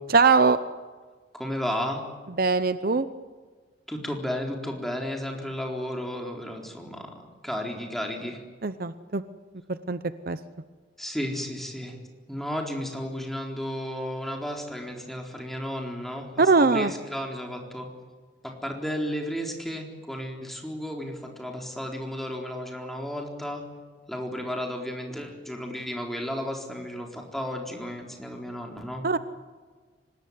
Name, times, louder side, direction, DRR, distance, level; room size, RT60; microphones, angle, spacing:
voice 1, 0.1-0.6 2.4-3.1 8.6-9.2 9.7-10.0 10.3-10.4 16.4-16.9 29.0-29.2, right 4 dB, 55° right, 13 dB, 0.8 m, -21 dB
voice 2, 1.3-2.0 3.9-8.4 11.0-11.9 12.3-17.9 18.4-23.6 24.1-29.1, equal, ahead, 1 dB, 4.1 m, -33 dB
25.0 x 20.0 x 9.5 m, 1.5 s
head